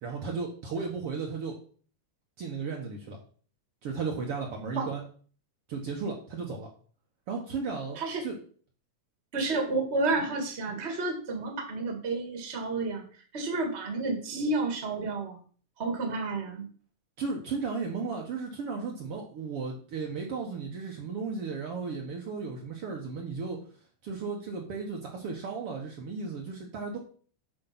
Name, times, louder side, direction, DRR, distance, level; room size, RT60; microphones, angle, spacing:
voice 1, 0.0-1.6 2.4-3.2 3.8-5.0 5.7-6.7 7.3-8.4 17.2-23.6 24.0-27.0, right 4 dB, 60° right, 0 dB, 2.0 m, -35 dB
voice 2, 9.3-13.0 13.3-15.4 15.8-16.6, right 3 dB, 25° right, 2 dB, 1.8 m, -30 dB
8.0 x 5.1 x 5.9 m, 0.43 s
omnidirectional pair, 3.4 m